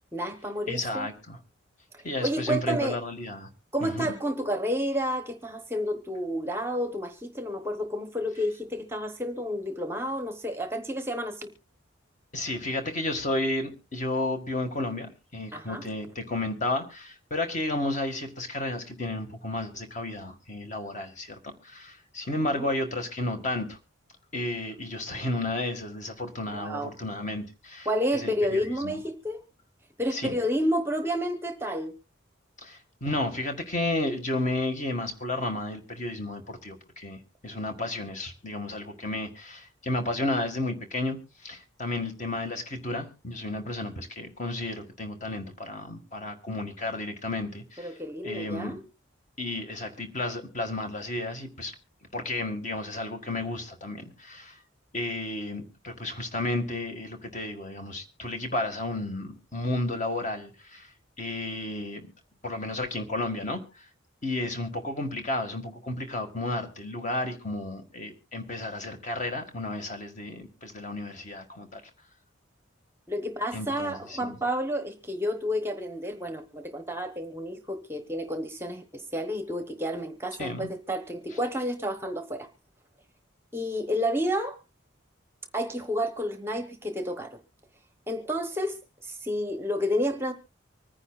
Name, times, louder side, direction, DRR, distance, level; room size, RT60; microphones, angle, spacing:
voice 1, 0.1-1.1 1.9-3.0 3.7-11.5 15.5-15.8 22.5-22.7 26.5-26.9 27.9-29.4 30.0-31.9 47.8-48.8 73.1-82.5 83.5-84.6 85.5-87.4 88.1-90.3, equal, 10° right, 0.9 m, -30 dB
voice 2, 0.7-1.4 2.0-3.5 3.8-4.1 12.3-23.8 24.3-27.9 28.1-29.0 30.1-30.3 32.6-47.9 48.2-48.7 49.4-51.7 52.1-54.6 54.9-60.9 61.2-62.1 62.4-63.9 64.2-71.8 73.5-74.4 80.4-80.7, left 2 dB, 40° left, 1.8 m, -32 dB
25.0 x 9.9 x 2.4 m
head